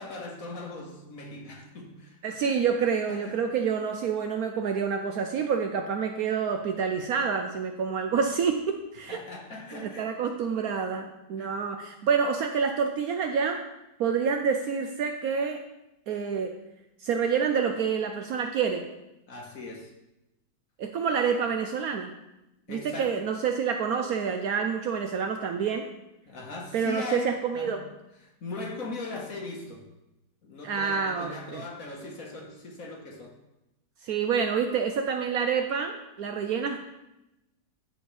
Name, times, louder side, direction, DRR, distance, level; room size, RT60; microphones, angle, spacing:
voice 1, 0.0-2.6 3.1-3.4 9.1-10.1 11.4-11.5 19.3-19.9 22.7-23.3 26.3-27.8 28.2-29.8 30.4-33.3, left 3 dB, 55° left, 0 dB, 1.5 m, -39 dB
voice 2, 2.2-9.2 9.7-13.6 14.0-15.6 16.1-16.5 17.0-18.8 20.8-22.1 22.7-25.9 26.7-27.8 30.6-31.6 34.0-36.8, right 6 dB, 70° right, 5 dB, 0.9 m, -28 dB
13.0 x 4.4 x 3.3 m, 0.92 s
omnidirectional pair, 1.9 m